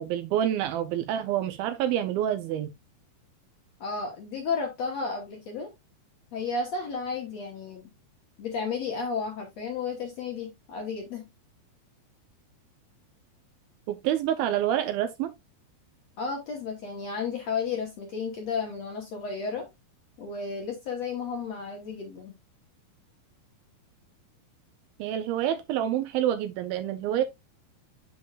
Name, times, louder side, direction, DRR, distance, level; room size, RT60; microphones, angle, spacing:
voice 1, 0.0-2.7 13.9-15.3 25.0-27.2, right 11 dB, 80° right, 2.3 m, -27 dB
voice 2, 3.8-5.7 6.3-7.9 8.4-11.2 16.2-19.7 20.2-22.3, left 5 dB, 60° left, 1.8 m, -33 dB
7.7 x 7.1 x 2.4 m
omnidirectional pair, 4.7 m